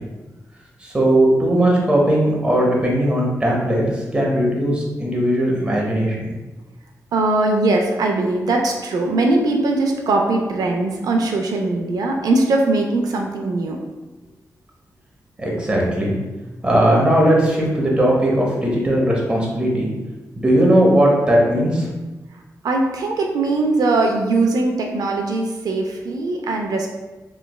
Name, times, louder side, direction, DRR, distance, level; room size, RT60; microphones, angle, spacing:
voice 1, 0.8-6.2 15.4-16.2 16.6-19.9 20.4-21.9, right 1 dB, 15° right, -3 dB, 0.7 m, -18 dB
voice 2, 7.1-13.8 22.6-26.9, right 2 dB, 80° right, 1 dB, 0.4 m, -20 dB
3.2 x 3.0 x 2.3 m, 1.1 s
wide cardioid pair, 145°, 6 cm